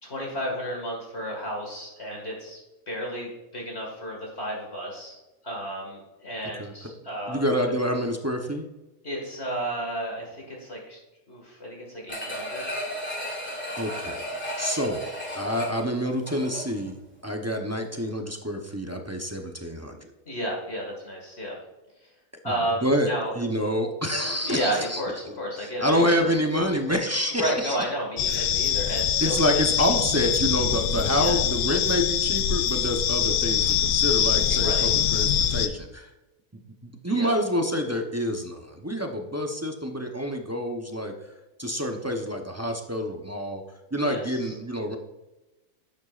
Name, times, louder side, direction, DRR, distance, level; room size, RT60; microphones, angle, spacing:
voice 1, 0.0-2.6 2.9-5.2 5.4-7.4 9.0-11.0 11.3-12.6 20.3-21.5 22.4-23.3 24.4-26.3 27.3-29.7 30.2-30.3 31.1-31.4 34.4-34.9 37.1-37.3 44.0-44.5, equal, 50° left, -1 dB, 2.2 m, -32 dB
voice 2, 7.3-8.7 13.8-14.2 14.6-15.1 15.3-17.0 17.2-20.1 22.4-22.5 22.8-25.0 25.3-27.8 28.3-28.5 29.2-36.1 36.8-41.1 41.6-43.6 43.9-45.0, equal, 15° right, 2 dB, 0.6 m, -27 dB
sound 1, 12.1-16.9 17.3-17.4, equal, 10° left, 2.3 m, -34 dB
sound 2, 28.2-35.7, left 9 dB, 70° left, 1.0 m, -24 dB
11.5 x 8.0 x 2.5 m, 1.0 s
omnidirectional pair, 1.5 m